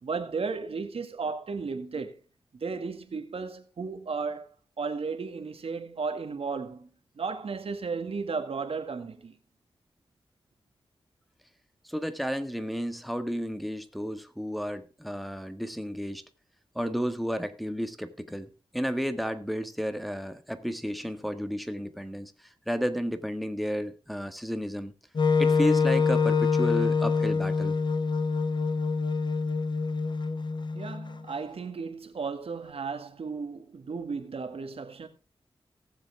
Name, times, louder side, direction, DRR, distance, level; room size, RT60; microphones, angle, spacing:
voice 1, 0.0-2.2 2.5-4.5 4.8-6.9 7.2-9.4 30.7-35.1, right 4 dB, 70° right, 2.0 m, -34 dB
voice 2, 11.8-16.2 16.7-24.9 25.4-27.8, equal, ahead, 1.6 m, -32 dB
Wind instrument woodwind instrument, 25.2-31.2, left 4 dB, 50° left, 0.9 m, -25 dB
18.0 x 7.5 x 3.5 m
wide cardioid pair, 80°, 10 cm